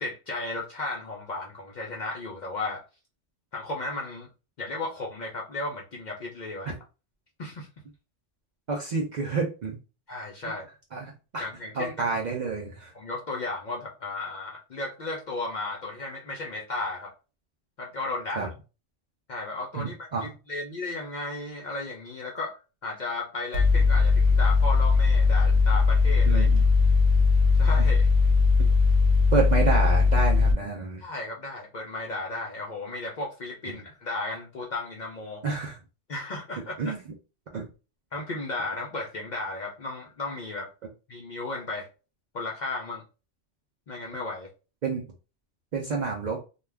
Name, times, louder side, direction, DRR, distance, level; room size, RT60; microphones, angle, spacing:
voice 1, 0.0-2.8 3.5-4.3 4.6-6.7 7.4-7.7 10.1-10.6 11.4-11.9 12.9-17.1 17.8-18.5 19.3-19.9 20.5-26.5 27.6-28.1 31.0-35.4 36.1-36.9 38.1-40.7 41.1-41.9 42.3-43.0 43.9-44.5, left 2 dB, 55° left, -1 dB, 0.5 m, -34 dB
voice 2, 8.7-9.8 10.9-11.5 11.7-12.9 18.3-18.5 19.7-20.3 26.3-26.6 27.8-27.9 29.3-31.0 33.7-33.9 35.4-35.8 36.8-37.0 37.5-37.7 44.8-45.1 45.7-46.4, right 4 dB, 60° right, -1 dB, 0.5 m, -29 dB
Mechanical fan, 23.5-30.5, left 4 dB, 90° right, 0.9 m, -20 dB
2.3 x 2.2 x 3.2 m, 0.32 s
omnidirectional pair, 1.2 m